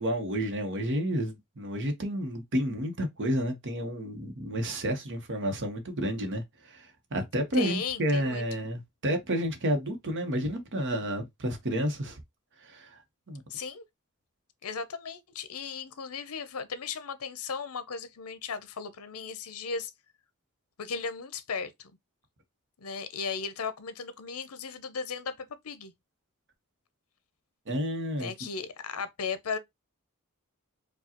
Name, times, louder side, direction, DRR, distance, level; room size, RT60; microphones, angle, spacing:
voice 1, 0.0-12.2 12.6-13.0 13.3-13.4 27.7-28.3, equal, 55° right, 1.0 m, -30 dB
voice 2, 7.5-8.7 13.5-13.8 14.6-19.9 20.8-21.9 22.8-25.9 28.2-29.6, left 5 dB, 75° left, 0.7 m, -36 dB
4.7 x 2.3 x 2.9 m
head